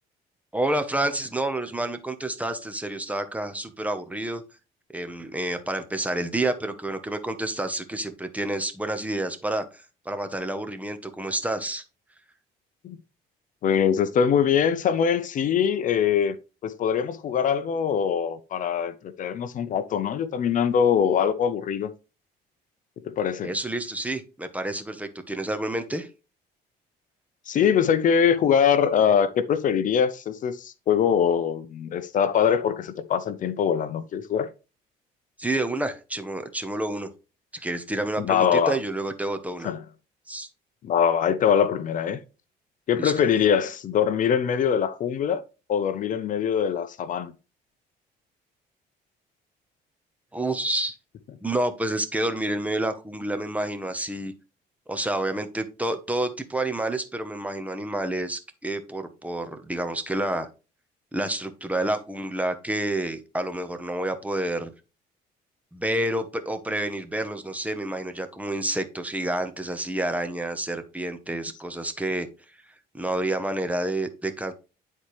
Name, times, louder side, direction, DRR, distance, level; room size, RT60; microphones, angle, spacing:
voice 1, 0.5-4.4 4.9-11.8 23.4-26.1 35.4-37.1 37.5-39.7 40.3-40.5 43.0-43.3 50.3-51.0 51.4-54.3 54.9-60.5 61.1-64.7 65.7-72.3 72.9-74.5, right 1 dB, 10° right, 0.9 m, -29 dB
voice 2, 13.6-16.4 16.6-21.9 23.1-23.5 27.5-34.5 38.2-38.8 39.6-39.8 40.8-42.2 42.9-45.4 45.7-47.3, left 8 dB, 50° left, 0.6 m, -23 dB
9.9 x 4.2 x 3.1 m
cardioid pair, 110°, 17 cm